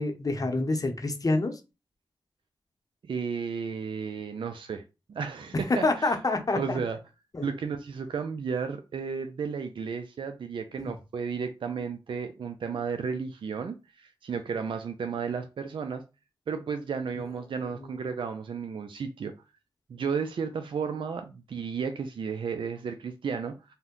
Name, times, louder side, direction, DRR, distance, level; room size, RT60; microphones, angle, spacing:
voice 1, 0.0-1.6 5.8-6.8 7.3-7.5 10.8-10.9 17.8-17.9, left 2 dB, 40° left, 0.7 m, -27 dB
voice 2, 3.0-4.8 5.1-6.1 6.5-7.0 7.4-16.0 16.5-19.3 19.9-23.7, right 6 dB, 65° right, 0.4 m, -33 dB
2.7 x 2.1 x 3.7 m
cardioid pair, 45°, 9 cm